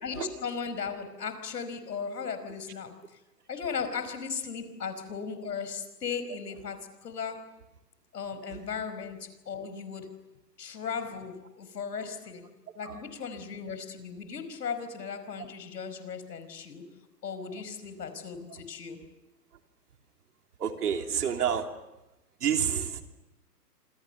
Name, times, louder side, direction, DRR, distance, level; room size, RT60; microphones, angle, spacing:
voice 1, 0.0-3.2 3.5-7.5 8.1-10.1 10.6-12.5 12.7-16.8 17.2-19.0, left 6 dB, 75° left, 10 dB, 5.2 m, -37 dB
voice 2, 20.6-21.7 22.4-23.0, right 8 dB, 70° right, 5 dB, 3.2 m, -29 dB
27.0 x 27.0 x 6.9 m, 0.97 s
hypercardioid pair, 145°, 49 cm